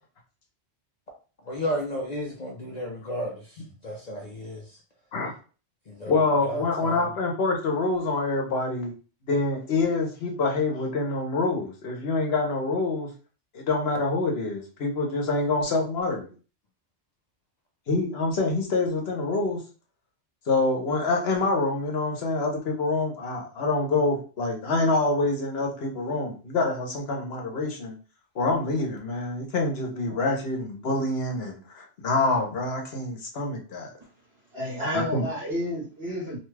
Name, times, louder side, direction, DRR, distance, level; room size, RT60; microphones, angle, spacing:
voice 1, 1.5-3.4 3.8-4.6 5.9-6.1 6.5-7.0, equal, 45° left, -2 dB, 0.6 m, -32 dB
voice 2, 6.1-8.9 9.3-13.1 13.5-16.3 17.9-19.6 20.5-27.9 28.3-33.9 34.9-35.2, left 3 dB, 65° left, 1 dB, 1.0 m, -26 dB
voice 3, 34.5-36.4, left 1 dB, 55° right, -6 dB, 1.2 m, -30 dB
2.8 x 2.3 x 3.2 m, 0.37 s
omnidirectional pair, 1.1 m